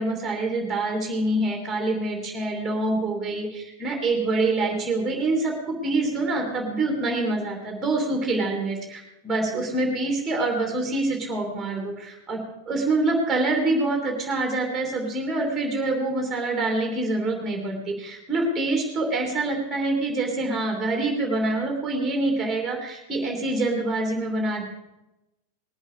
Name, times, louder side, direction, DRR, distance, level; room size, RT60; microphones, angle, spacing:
voice 1, 0.0-24.6, right 2 dB, 10° right, 1 dB, 3.1 m, -26 dB
20.5 x 8.0 x 5.0 m, 0.93 s
figure-of-eight pair, 90°, 0 cm